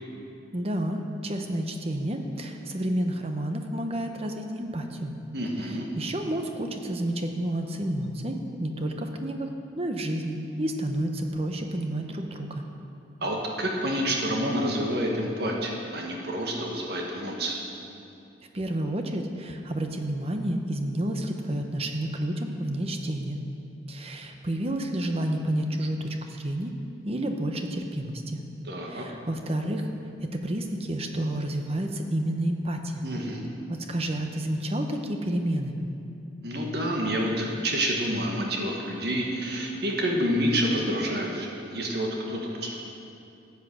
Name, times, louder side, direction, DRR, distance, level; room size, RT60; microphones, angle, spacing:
voice 1, 0.5-5.1 5.6-9.5 9.7-12.7 18.5-23.4 23.9-26.7 27.0-28.4 28.9-29.9 30.2-33.0 33.7-35.7, right 1 dB, 35° right, 4 dB, 1.0 m, -30 dB
voice 2, 5.3-5.9 13.2-17.6 28.7-29.0 33.0-33.4 36.4-42.8, equal, 60° right, 0 dB, 1.7 m, -28 dB
14.0 x 8.4 x 6.3 m, 2.6 s
head